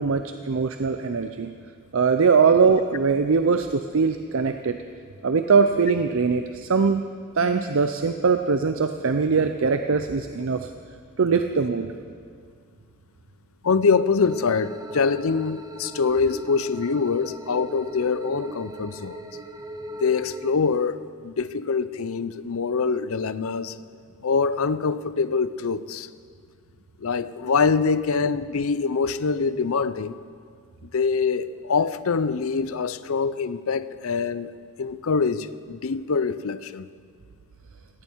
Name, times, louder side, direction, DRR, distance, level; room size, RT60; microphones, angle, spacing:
voice 1, 0.0-1.5 1.9-4.8 5.2-7.0 7.4-10.7 11.2-11.9, right 5 dB, 65° right, 0.6 m, -21 dB
voice 2, 13.6-19.2 20.0-23.8 24.2-26.1 27.0-30.2 30.9-34.5 34.8-36.9, left 5 dB, 70° left, 0.6 m, -24 dB
sound 1, 14.2-20.5, right 1 dB, 15° right, 0.8 m, -39 dB
17.5 x 16.5 x 4.6 m
head